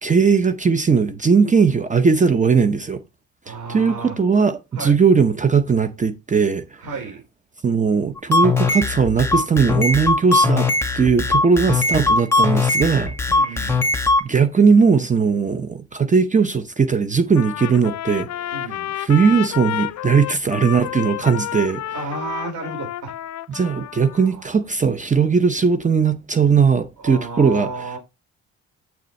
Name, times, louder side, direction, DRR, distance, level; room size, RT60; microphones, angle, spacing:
voice 1, 0.0-3.0 3.7-6.7 7.6-13.7 14.2-21.9 23.5-27.7, right 5 dB, 25° right, 0.8 m, -18 dB
voice 2, 3.4-4.2 4.7-5.0 6.8-7.2 11.5-11.6 13.3-13.8 18.5-18.9 21.9-23.1 23.5-23.8 24.2-24.4 27.0-28.0, right 3 dB, 80° right, 5.1 m, -32 dB
sound 1, 8.2-14.2, left 3 dB, 10° left, 1.8 m, -19 dB
Trumpet, 17.4-24.3, left 13 dB, 65° left, 0.5 m, -30 dB
8.0 x 6.6 x 3.2 m
cardioid pair, 90°, 30 cm